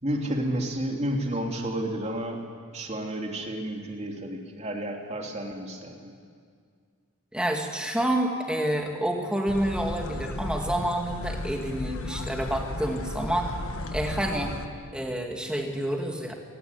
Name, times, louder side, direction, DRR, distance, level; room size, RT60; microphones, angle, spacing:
voice 1, 0.0-2.4 2.7-6.1, right 1 dB, 30° right, 1 dB, 3.1 m, -31 dB
voice 2, 7.3-13.5 13.9-14.5 14.9-16.3, right 1 dB, 5° right, 1 dB, 2.7 m, -28 dB
sound 1, 9.5-14.7, left 1 dB, 85° left, 1.5 m, -35 dB
27.5 x 18.5 x 10.0 m, 2.1 s
head